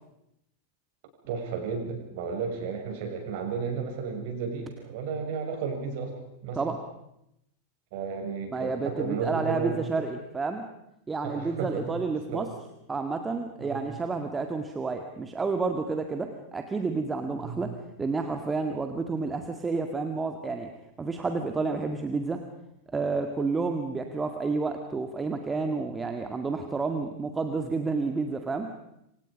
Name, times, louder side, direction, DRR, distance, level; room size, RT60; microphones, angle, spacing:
voice 1, 1.2-6.1 6.4-6.6 7.9-10.0 11.2-12.5 13.6-13.8 17.4-17.6, right 5 dB, 50° right, 3 dB, 6.8 m, -33 dB
voice 2, 8.5-10.7 11.1-12.5 12.9-17.7 18.0-20.7 21.0-22.4 22.9-28.7, right 4 dB, 15° right, 6 dB, 2.0 m, -30 dB
28.0 x 25.5 x 5.3 m, 0.82 s
figure-of-eight pair, 90°, 0 cm